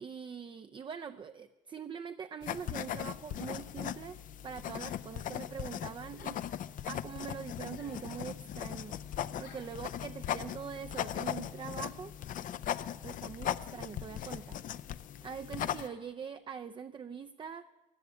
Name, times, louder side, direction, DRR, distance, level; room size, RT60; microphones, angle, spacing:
voice 1, 0.0-4.2 4.4-6.4 6.8-9.0 9.4-12.1 13.0-14.7 15.2-17.6, right 7 dB, 30° right, 8 dB, 0.5 m, -43 dB
sound 1, 2.4-15.9, left 10 dB, 50° left, 0.5 m, -39 dB
sound 2, 3.3-3.6 4.8-5.0 6.2-6.6 7.7-8.2 9.4-9.7 10.9-11.3 12.6-13.0 14.2-14.5 15.7-16.0, left 7 dB, 85° left, 4.1 m, -56 dB
15.5 x 10.0 x 8.1 m, 1.1 s
cardioid pair, 110°, 17 cm